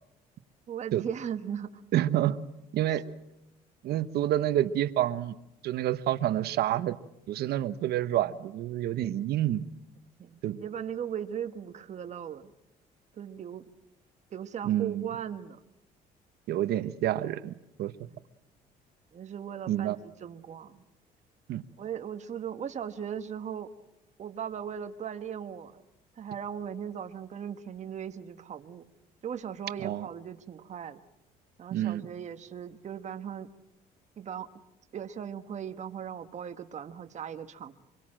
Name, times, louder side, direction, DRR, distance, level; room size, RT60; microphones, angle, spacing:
voice 1, 0.7-1.8 3.0-3.1 10.2-12.5 13.1-13.6 14.3-15.6 18.1-18.2 19.1-20.8 21.8-23.7 24.2-25.8 26.2-28.8 29.2-31.0 31.6-33.5 34.2-34.5 34.9-37.7, right 8 dB, 45° right, 8 dB, 1.3 m, -38 dB
voice 2, 1.9-2.4 2.7-3.0 3.8-5.3 5.6-7.0 7.3-9.7 10.4-10.6 14.6-15.1 16.5-17.9 19.7-20.0 21.5-21.6 29.8-30.1 31.7-32.1, right 12 dB, 70° right, 13 dB, 1.0 m, -28 dB
26.0 x 22.5 x 7.6 m, 0.88 s
cardioid pair, 110°, 17 cm